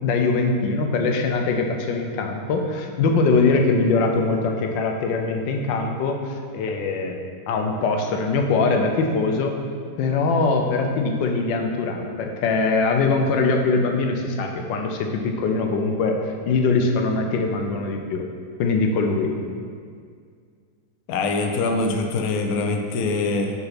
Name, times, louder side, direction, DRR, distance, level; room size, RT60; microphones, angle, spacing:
voice 1, 0.0-9.5 10.0-18.2 18.6-19.3, left 3 dB, 90° left, 3 dB, 1.3 m, -22 dB
voice 2, 21.1-23.5, left 3 dB, 65° left, 3 dB, 1.0 m, -23 dB
5.6 x 4.0 x 5.8 m, 2.1 s
omnidirectional pair, 2.0 m